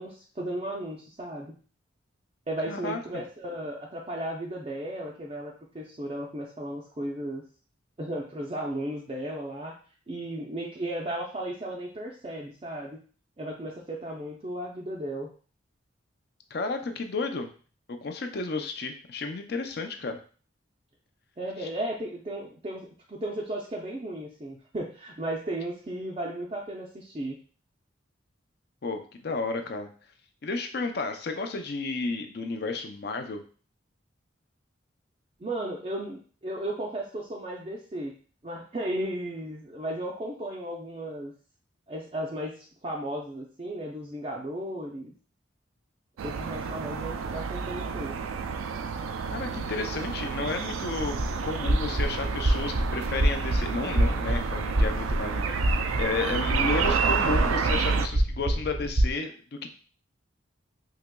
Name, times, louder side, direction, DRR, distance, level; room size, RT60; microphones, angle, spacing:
voice 1, 0.0-1.5 2.5-7.4 8.0-9.7 10.1-13.0 13.4-15.3 21.4-27.4 35.4-38.1 38.4-41.3 41.9-45.1 46.2-48.1 55.5-55.6, right 1 dB, 30° right, -3 dB, 0.4 m, -35 dB
voice 2, 2.7-3.2 16.5-17.5 17.9-20.2 21.6-21.7 28.8-29.9 30.4-33.4 49.3-51.2 51.4-55.5 56.0-59.7, left 3 dB, 55° left, 6 dB, 0.5 m, -32 dB
sound 1, 46.2-58.1, right 5 dB, 90° right, 0.3 m, -30 dB
sound 2, 51.0-59.1, right 1 dB, 60° right, 0.7 m, -27 dB
4.7 x 2.9 x 2.2 m, 0.40 s
head